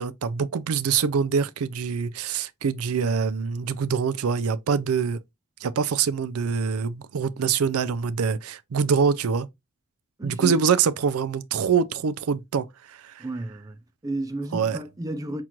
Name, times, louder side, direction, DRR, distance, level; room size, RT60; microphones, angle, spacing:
voice 1, 0.0-5.2 5.6-9.5 10.2-13.3 14.5-14.8, right 6 dB, 85° right, 0.4 m, -25 dB
voice 2, 10.2-10.6 13.2-15.4, right 2 dB, 15° right, 0.4 m, -32 dB
5.9 x 2.5 x 2.9 m
head